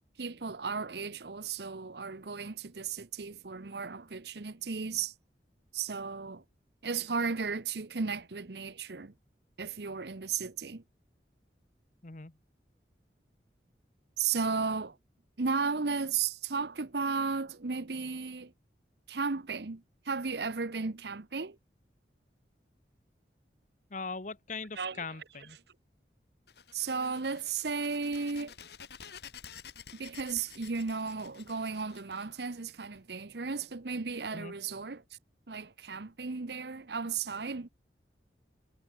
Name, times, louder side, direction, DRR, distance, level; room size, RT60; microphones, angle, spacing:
voice 1, 0.2-5.1 5.7-6.4 6.8-9.1 9.6-10.8 14.2-15.0 15.4-18.5 19.1-21.6 24.8-25.0 26.7-28.5 29.9-35.0 35.5-37.7, right 5 dB, 70° right, 0.9 m, -34 dB
voice 2, 12.0-12.3 23.9-25.6 34.3-34.5, left 4 dB, 45° left, 1.2 m, -40 dB
sound 1, 26.5-33.0, left 7 dB, 70° left, 2.4 m, -51 dB
head